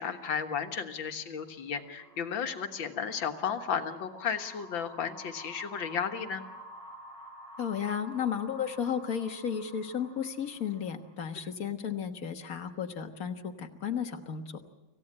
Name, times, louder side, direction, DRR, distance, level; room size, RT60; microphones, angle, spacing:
voice 1, 0.0-6.4, left 7 dB, 75° left, 6 dB, 2.2 m, -34 dB
sound 1, 1.8-11.3, equal, 5° right, 6.6 m, -50 dB
voice 2, 7.6-14.4, left 8 dB, 50° left, 6 dB, 1.7 m, -33 dB
26.0 x 16.0 x 8.8 m, 1.1 s
omnidirectional pair, 2.1 m